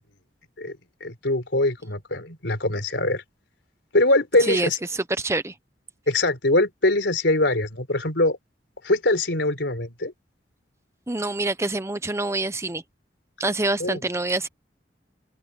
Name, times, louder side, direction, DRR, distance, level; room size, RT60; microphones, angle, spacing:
voice 1, 0.6-3.2 3.9-4.8 6.1-8.4 8.8-10.1 13.8-14.0, left 2 dB, 75° left, 4.3 m, -23 dB
voice 2, 4.4-5.5 11.1-12.8 13.4-14.5, right 2 dB, 15° right, 0.8 m, -26 dB
head